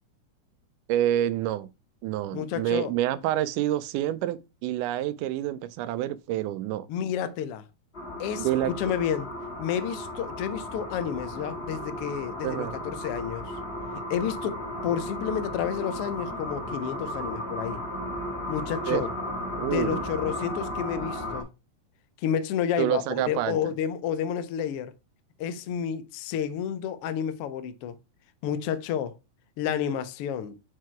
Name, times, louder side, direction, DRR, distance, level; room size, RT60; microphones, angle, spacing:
voice 1, 0.9-1.7 2.0-6.9 8.4-8.9 12.4-12.8 18.9-19.1 19.6-20.0 22.8-23.6, right 12 dB, 90° right, 2.1 m, -28 dB
voice 2, 2.3-2.9 6.9-7.6 8.2-9.3 9.6-13.5 14.1-17.8 18.5-19.1 19.6-21.5 22.2-24.9 25.4-28.0 28.4-29.2 29.6-30.5, left 9 dB, 90° left, 1.2 m, -30 dB
sound 1, 7.9-21.4, left 1 dB, 25° left, 1.6 m, -35 dB
5.8 x 4.7 x 4.4 m
omnidirectional pair, 3.6 m